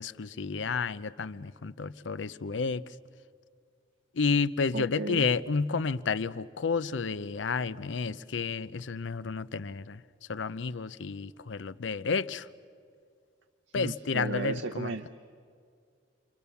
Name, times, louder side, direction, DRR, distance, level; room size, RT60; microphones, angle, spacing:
voice 1, 0.0-3.0 4.1-10.0 10.3-12.5 13.7-15.0, left 5 dB, 80° left, 0.6 m, -31 dB
voice 2, 4.7-5.3 13.7-15.1, right 3 dB, 75° right, 0.7 m, -34 dB
29.5 x 24.5 x 7.0 m
head